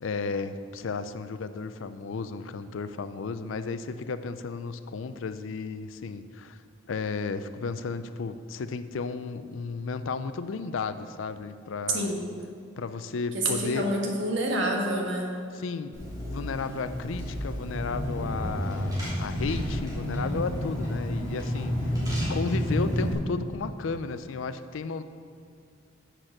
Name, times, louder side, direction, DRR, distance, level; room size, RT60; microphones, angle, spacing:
voice 1, 0.0-6.6 6.9-12.1 12.8-13.9 15.5-25.0, left 4 dB, 80° left, 11 dB, 0.4 m, -33 dB
voice 2, 11.9-12.3 13.3-15.3, right 1 dB, 70° right, 0 dB, 1.5 m, -28 dB
Car / Engine, 15.9-23.1, equal, 20° right, 2.5 m, -30 dB
7.6 x 6.4 x 6.4 m, 2.3 s
head